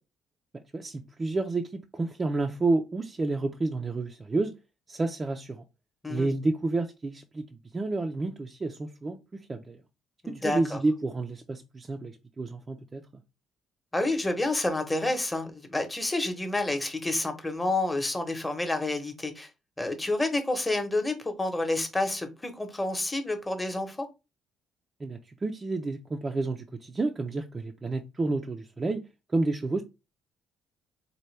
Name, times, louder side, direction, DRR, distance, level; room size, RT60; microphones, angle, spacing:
voice 1, 0.7-4.5 4.9-5.6 6.1-7.5 7.7-9.8 10.3-13.0 25.0-29.0 29.3-29.8, right 3 dB, 30° right, 0.4 m, -30 dB
voice 2, 10.2-10.8 13.9-19.5 19.8-24.1, left 2 dB, 15° left, 0.9 m, -29 dB
4.3 x 2.2 x 3.2 m
cardioid pair, 90°, 0 cm